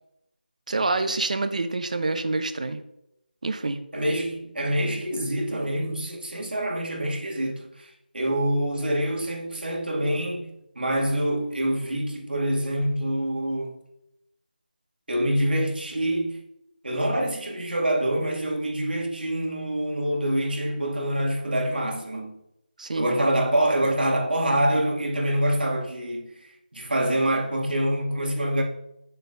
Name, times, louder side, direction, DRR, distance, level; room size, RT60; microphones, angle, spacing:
voice 1, 0.7-2.8 3.4-3.8 22.8-23.1, right 3 dB, 50° right, 0.7 m, -27 dB
voice 2, 3.9-10.5 10.8-13.8 15.1-16.4 16.8-22.4 22.9-26.3 26.7-28.6, right 1 dB, 80° right, 2.2 m, -26 dB
9.7 x 6.6 x 2.6 m
figure-of-eight pair, 175°, 5 cm